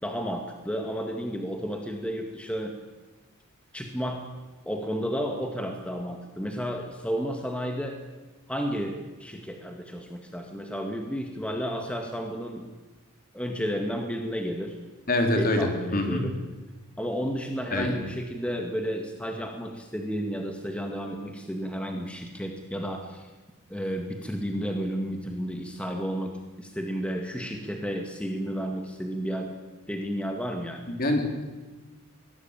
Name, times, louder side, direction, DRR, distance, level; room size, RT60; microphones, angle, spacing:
voice 1, 0.0-2.7 3.7-4.3 4.7-8.0 8.5-12.6 13.3-14.8 15.3-16.3 17.0-23.3 23.7-29.5 29.9-30.9, equal, 5° left, 3 dB, 2.0 m, -32 dB
voice 2, 15.1-16.3 17.7-17.9 31.0-31.7, left 1 dB, 40° left, 4 dB, 3.7 m, -25 dB
23.0 x 18.0 x 8.9 m, 1.2 s
head